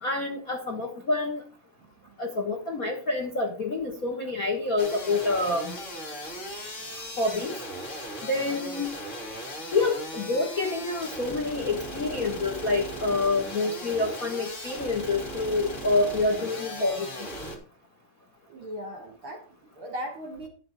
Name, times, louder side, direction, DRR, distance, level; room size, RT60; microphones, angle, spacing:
voice 1, 0.0-1.4 2.2-5.8 7.2-7.5 8.2-8.9 9.7-17.3, left 3 dB, 55° left, 3 dB, 1.0 m, -27 dB
sound 1, 4.8-17.6, equal, 25° left, 2.8 m, -38 dB
voice 2, 18.5-20.5, equal, 60° right, 4 dB, 1.5 m, -38 dB
11.5 x 7.7 x 4.0 m, 0.42 s
omnidirectional pair, 3.9 m